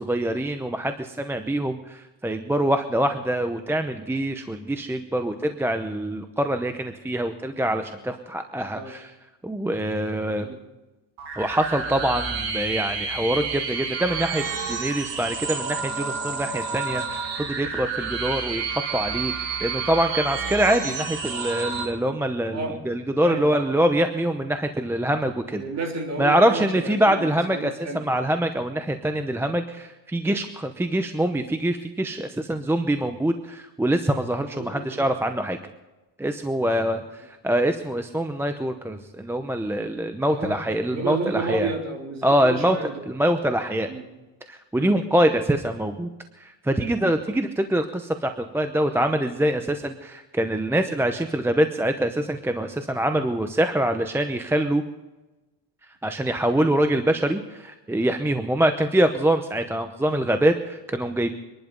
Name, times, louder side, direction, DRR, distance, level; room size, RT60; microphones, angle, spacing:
voice 1, 0.0-9.1 9.4-10.5 11.4-14.4 14.7-19.3 19.6-25.6 26.2-35.6 36.2-41.7 42.2-43.9 44.5-46.1 46.4-54.8 56.0-61.3, right 1 dB, 5° right, 7 dB, 0.7 m, -24 dB
sound 1, 11.2-21.8, right 5 dB, 70° right, 4.6 m, -30 dB
voice 2, 23.2-23.6 24.3-24.4 25.5-28.3 34.5-35.1 36.6-37.0 40.3-40.6 40.9-43.1 43.9-44.0 44.7-45.0 56.6-56.8, right 3 dB, 35° right, 2 dB, 3.6 m, -32 dB
24.0 x 11.5 x 5.3 m, 1.1 s
cardioid pair, 135°, 45 cm